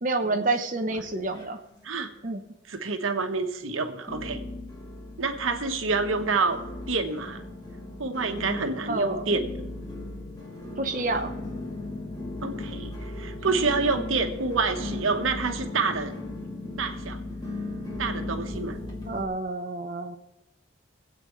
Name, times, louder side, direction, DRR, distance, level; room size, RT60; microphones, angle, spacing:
voice 1, 0.0-1.6 2.2-2.4 8.9-9.3 10.8-11.3 19.1-20.2, right 2 dB, 40° right, 3 dB, 0.9 m, -28 dB
sound 1, 0.9-1.8 2.1-2.7 3.2-3.3 4.1-19.2, left 2 dB, 20° left, 2.4 m, -37 dB
voice 2, 2.7-4.4 5.2-6.6 6.9-7.4 8.0-9.5 12.4-16.1 16.8-17.2 18.0-18.8, right 4 dB, 90° right, 6 dB, 1.2 m, -28 dB
24.5 x 8.4 x 3.2 m, 0.95 s
head